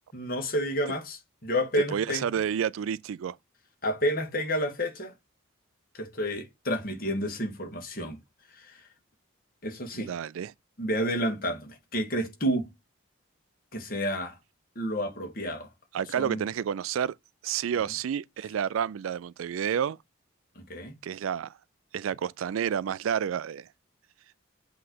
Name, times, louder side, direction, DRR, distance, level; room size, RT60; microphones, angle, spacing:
voice 1, 0.1-2.3 3.8-5.1 5.9-8.2 8.5-8.8 9.6-10.1 10.8-12.7 13.7-14.4 14.8-15.7 16.2-16.4 20.6-20.9, equal, 45° left, 1.9 m, -30 dB
voice 2, 1.9-3.4 9.9-10.5 15.9-17.2 17.4-20.0 21.0-21.6 21.9-23.7, right 8 dB, 85° right, 0.3 m, -30 dB
7.7 x 3.2 x 4.0 m
head